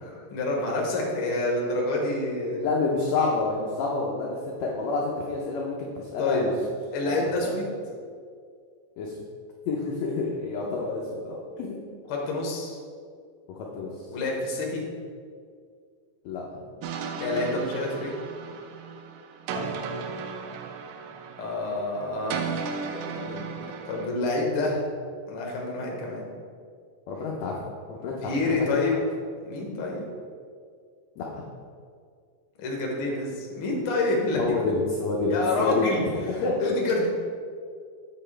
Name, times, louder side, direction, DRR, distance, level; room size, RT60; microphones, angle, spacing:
voice 1, 0.0-2.6 6.2-6.4 6.9-7.7 12.1-12.8 14.1-14.8 17.2-18.1 21.4-22.6 22.8-23.5 23.9-24.8 25.3-26.3 28.1-29.0 29.4-30.1 32.6-34.6 35.3-36.0 36.3-37.1, left 2 dB, 55° left, -1 dB, 1.7 m, -28 dB
voice 2, 2.6-6.5 7.0-7.5 9.0-9.1 9.7-11.8 13.5-13.9 16.2-16.4 19.5-19.8 27.1-27.6 27.9-28.6 31.2-31.4 34.4-35.9 36.2-36.6, left 3 dB, 75° left, -2 dB, 1.6 m, -28 dB
sound 1, 16.8-24.1, right 5 dB, 90° right, 2.2 m, -35 dB
8.0 x 6.8 x 3.3 m, 2.1 s
omnidirectional pair, 3.9 m